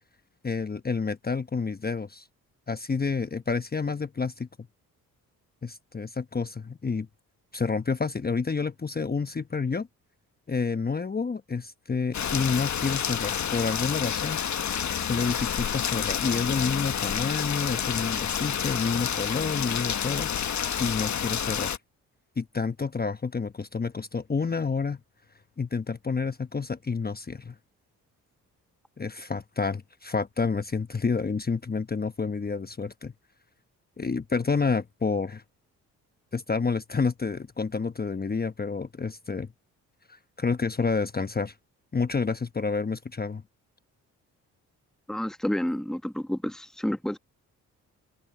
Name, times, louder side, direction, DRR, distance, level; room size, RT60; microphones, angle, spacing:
voice 1, 0.4-2.3 2.7-4.5 5.6-7.1 7.5-9.9 10.5-14.4 15.0-21.7 22.4-25.0 25.6-27.5 29.0-33.1 34.0-35.4 36.3-39.5 40.1-41.6 41.9-43.4, left 4 dB, 25° left, 1.1 m, -29 dB
Rain, 12.1-21.8, left 8 dB, 50° left, 1.3 m, -29 dB
voice 2, 45.1-47.2, left 1 dB, ahead, 1.3 m, -29 dB
supercardioid pair, 55°, 37 cm